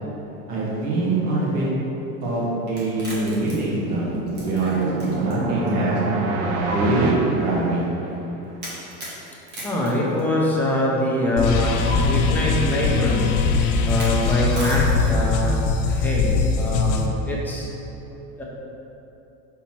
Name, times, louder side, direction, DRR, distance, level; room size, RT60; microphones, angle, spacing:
voice 1, 0.5-1.7 2.2-6.0 6.7-7.8, right 2 dB, 55° right, -5 dB, 1.5 m, -23 dB
sound 1, 2.7-5.3 5.7-5.8 6.7-6.8 8.6-10.7 11.9-12.0 13.8-15.3, right 1 dB, 30° right, 1.4 m, -36 dB
sound 2, 3.1-8.3, right 3 dB, 80° right, 0.8 m, -28 dB
voice 2, 9.6-13.3 13.8-17.7 18.4-18.5, left 1 dB, 5° left, -5 dB, 0.4 m, -24 dB
sound 3, 11.4-17.1, left 4 dB, 85° left, 0.6 m, -21 dB
5.7 x 4.0 x 4.5 m, 3.0 s
cardioid pair, 170°, 36 cm